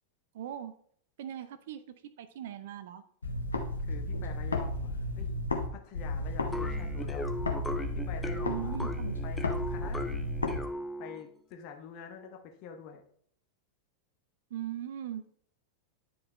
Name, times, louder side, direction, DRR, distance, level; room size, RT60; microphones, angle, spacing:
voice 1, 0.3-0.7 1.2-3.0 8.4-9.1 14.5-15.2, right 11 dB, 55° right, 12 dB, 0.5 m, -39 dB
sound 1, 3.2-5.7 5.9-10.6, left 2 dB, 75° left, 0.9 m, -33 dB
voice 2, 3.8-5.5 5.7-7.2 7.9-8.7 9.2-10.0 11.0-13.0, left 7 dB, 40° left, 4 dB, 1.1 m, -46 dB
sound 2, 6.5-11.3, left 1 dB, 10° left, 0.6 m, -38 dB
9.6 x 4.7 x 3.1 m, 0.62 s
figure-of-eight pair, 90°, 0 cm